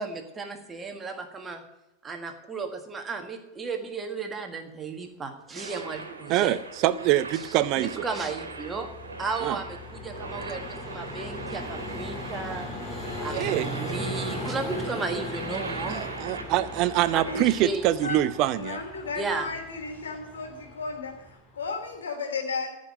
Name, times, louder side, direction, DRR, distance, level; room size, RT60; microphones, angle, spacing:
voice 1, 0.0-1.6 2.0-6.6 7.8-8.9 9.2-12.7 13.2-16.0 17.1-17.8 19.1-19.5, right 4 dB, 15° right, 5 dB, 1.5 m, -34 dB
sound 1, 5.5-17.6, right 3 dB, 70° right, 1.7 m, -40 dB
voice 2, 6.3-8.0 9.4-9.6 13.3-13.7 15.9-18.6, right 14 dB, 40° right, 16 dB, 0.4 m, -24 dB
Vehicle, 7.3-22.0, left 1 dB, 25° left, 3.2 m, -38 dB
voice 3, 18.5-22.7, left 4 dB, 65° left, 2 dB, 2.9 m, -34 dB
14.0 x 5.4 x 9.5 m, 0.91 s
figure-of-eight pair, 90°, 0 cm